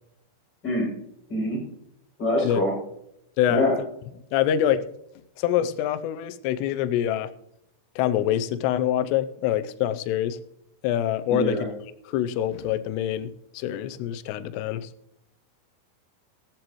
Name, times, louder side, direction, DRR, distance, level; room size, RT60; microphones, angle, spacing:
voice 1, 0.6-0.9 1.3-1.6 2.2-2.7 3.5-3.7 11.3-11.6, left 1 dB, 20° left, -4 dB, 7.0 m, -24 dB
voice 2, 4.3-4.9 5.4-7.3 8.0-10.4 10.8-11.7 12.1-14.9, left 11 dB, 80° left, 11 dB, 2.6 m, -25 dB
18.0 x 15.0 x 3.1 m, 0.81 s
omnidirectional pair, 5.4 m